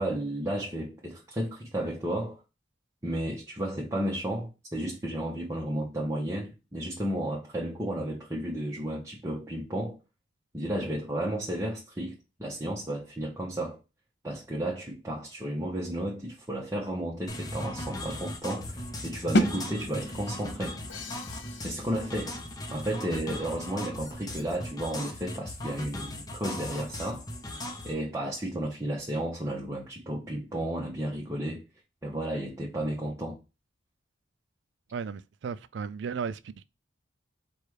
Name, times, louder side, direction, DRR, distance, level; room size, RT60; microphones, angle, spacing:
voice 1, 0.0-2.4 3.0-10.0 10.5-13.8 14.2-20.8 21.6-22.4 22.7-27.3 27.8-31.6 32.0-33.4, right 1 dB, 15° right, 0.8 m, -33 dB
sound 1, 17.3-27.9, left 1 dB, 20° left, 0.7 m, -38 dB
sound 2, 19.3-25.1, equal, 60° left, 0.7 m, -33 dB
Crash cymbal, 20.9-22.7, left 6 dB, 85° left, 0.9 m, -47 dB
voice 2, 34.9-36.6, right 6 dB, 65° right, 0.3 m, -35 dB
4.7 x 2.3 x 4.7 m
head